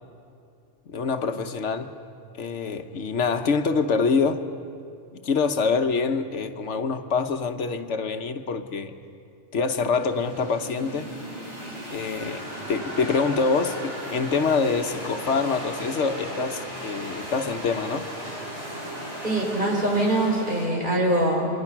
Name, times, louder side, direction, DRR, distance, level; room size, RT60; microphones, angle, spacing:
voice 1, 0.9-1.9 2.4-4.4 5.1-8.9 9.5-11.1 11.9-18.1, left 4 dB, 80° left, 7 dB, 1.3 m, -25 dB
sound 1, 10.0-20.7, equal, 60° right, 6.5 m, -36 dB
voice 2, 19.2-21.5, right 1 dB, 45° right, -2 dB, 5.1 m, -23 dB
29.0 x 24.5 x 6.0 m, 2.4 s
omnidirectional pair, 1.2 m